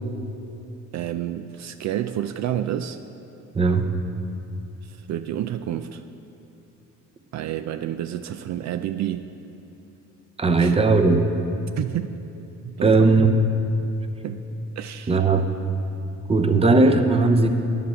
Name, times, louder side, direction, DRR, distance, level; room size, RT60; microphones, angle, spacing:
voice 1, 0.9-3.0 4.8-6.0 7.3-9.3 10.6-10.7 11.8-12.1 12.6-13.1 14.2-14.4 14.8-15.1, right 11 dB, 65° right, 9 dB, 0.4 m, -29 dB
voice 2, 3.5-3.9 10.4-11.3 12.8-13.4 15.1-15.5 16.3-17.5, right 3 dB, 20° right, 7 dB, 0.7 m, -17 dB
10.0 x 7.3 x 5.9 m, 2.9 s
cardioid pair, 90°, 30 cm